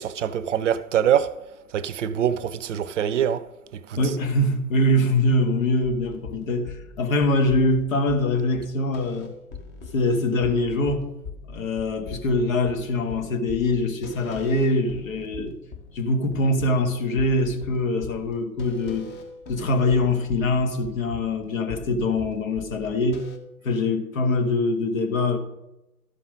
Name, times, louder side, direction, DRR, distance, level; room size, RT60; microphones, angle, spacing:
voice 1, 0.0-1.3 1.7-3.4 3.9-4.0, right 9 dB, 50° right, 0.6 m, -24 dB
voice 2, 4.0-9.3 9.9-11.1 11.5-15.5 15.9-19.1 19.5-23.2 23.6-25.4, left 2 dB, 60° left, 1.9 m, -23 dB
sound 1, 5.8-23.4, left 4 dB, 20° left, 1.2 m, -42 dB
13.0 x 5.6 x 5.2 m
figure-of-eight pair, 115°, 46 cm